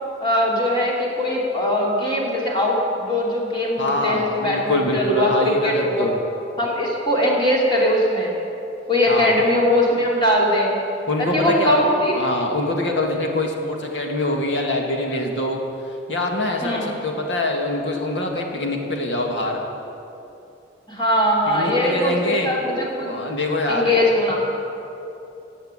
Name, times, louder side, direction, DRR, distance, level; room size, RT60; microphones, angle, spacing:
voice 1, 0.2-6.1 6.6-8.3 8.9-10.8 11.2-12.3 16.6-17.0 20.9-23.1 23.7-24.4, left 1 dB, 25° left, -3 dB, 3.1 m, -20 dB
voice 2, 3.8-6.2 9.1-9.4 11.1-15.6 16.1-19.6 21.5-22.5 23.0-23.9, left 1 dB, 75° left, 1 dB, 2.2 m, -24 dB
16.5 x 8.7 x 8.4 m, 2.8 s
head